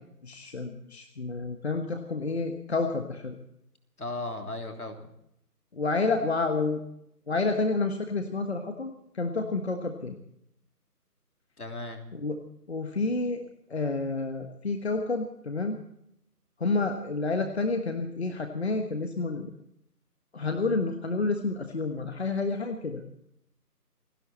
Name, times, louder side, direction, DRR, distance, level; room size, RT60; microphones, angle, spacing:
voice 1, 0.2-3.4 5.7-6.8 7.3-10.2 12.1-12.4 12.7-13.4 13.7-15.8 16.6-19.5 20.3-23.0, left 3 dB, 40° left, 6 dB, 1.4 m, -29 dB
voice 2, 4.0-5.1 11.6-12.0, left 2 dB, 65° left, 4 dB, 3.3 m, -36 dB
29.0 x 11.5 x 4.2 m, 0.76 s
figure-of-eight pair, 155°, 48 cm